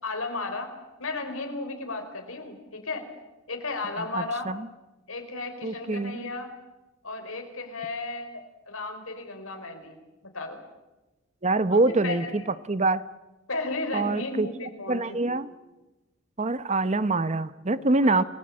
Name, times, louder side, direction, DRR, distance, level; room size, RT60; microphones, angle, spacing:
voice 1, 0.0-0.7 1.0-3.1 3.5-4.5 5.1-6.5 7.0-9.9 10.3-10.6 11.7-12.3 13.5-15.4 18.0-18.2, left 3 dB, 85° left, 5 dB, 4.9 m, -34 dB
voice 2, 4.0-4.7 5.6-6.3 11.4-12.4 12.7-13.0 13.9-14.5 14.9-15.5 16.4-18.2, right 2 dB, 35° right, 14 dB, 0.9 m, -25 dB
29.0 x 20.0 x 8.8 m, 1.1 s
head